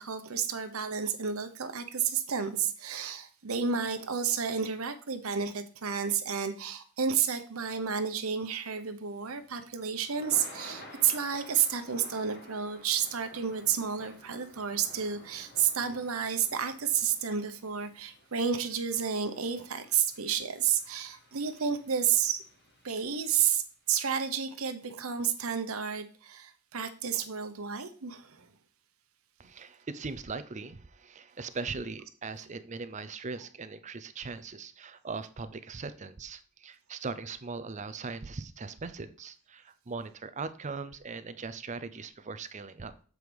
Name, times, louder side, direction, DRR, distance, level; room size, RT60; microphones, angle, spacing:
voice 1, 0.0-22.4 22.8-28.5, right 7 dB, 90° right, 9 dB, 0.9 m, -31 dB
Thunder / Rain, 9.2-23.4, left 1 dB, 50° left, 1.8 m, -53 dB
voice 2, 29.4-42.9, right 4 dB, 35° right, 12 dB, 0.6 m, -40 dB
7.8 x 4.8 x 5.2 m, 0.43 s
head